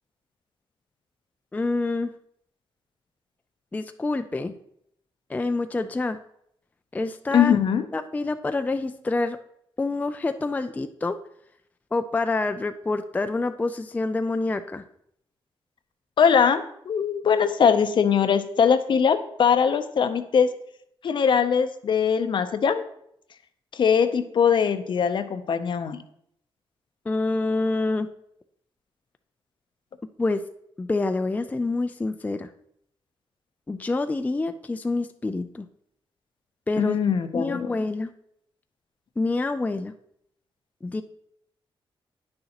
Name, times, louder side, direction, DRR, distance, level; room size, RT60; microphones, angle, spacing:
voice 1, 1.5-2.1 3.7-4.6 5.3-6.2 6.9-7.5 7.9-9.4 9.8-11.2 11.9-14.8 27.1-28.1 30.2-30.4 30.8-32.5 33.7-35.7 36.7-37.0 37.3-38.1 39.2-39.9 40.8-41.0, left 3 dB, 15° left, 9 dB, 0.3 m, -27 dB
voice 2, 7.3-7.9 16.2-20.5 21.0-22.8 23.7-26.0 36.8-37.7, left 7 dB, 60° left, 10 dB, 0.6 m, -21 dB
9.5 x 6.4 x 2.9 m, 0.73 s
cardioid pair, 95°, 9 cm